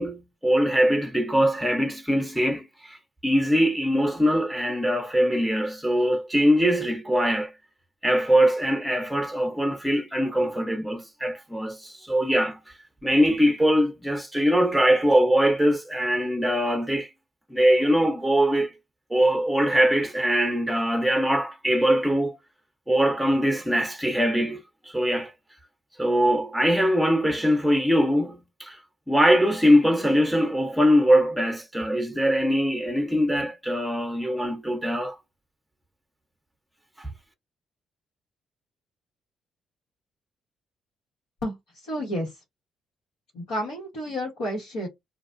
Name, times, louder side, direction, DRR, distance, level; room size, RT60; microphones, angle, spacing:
voice 1, 0.0-3.0 3.2-7.5 8.0-12.6 13.0-17.1 17.5-18.7 19.1-22.4 22.9-24.6 24.9-25.3 26.0-28.8 29.1-35.1 37.0-37.1, equal, ahead, 0.8 m, -22 dB
voice 2, 41.9-42.3 43.3-44.9, equal, 85° left, 1.3 m, -30 dB
2.4 x 2.2 x 2.5 m
supercardioid pair, 55°, 0 cm